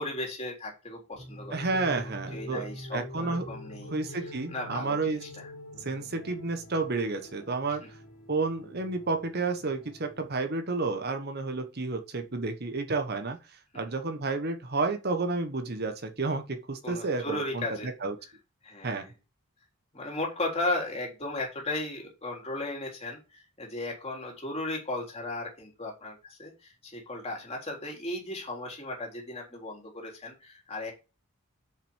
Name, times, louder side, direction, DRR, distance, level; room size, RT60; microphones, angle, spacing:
voice 1, 0.0-4.2 4.5-5.5 7.8-7.9 13.7-13.8 16.8-17.9 18.6-19.1 19.9-30.9, left 2 dB, 25° left, 3.6 m, -36 dB
sound 1, 1.1-10.3, left 1 dB, 65° left, 2.7 m, -45 dB
voice 2, 1.5-2.6 2.9-3.5 3.9-5.2 5.8-7.8 8.3-13.4 13.7-18.1 18.8-19.0, right 3 dB, 45° right, 1.2 m, -31 dB
6.9 x 5.8 x 6.3 m
head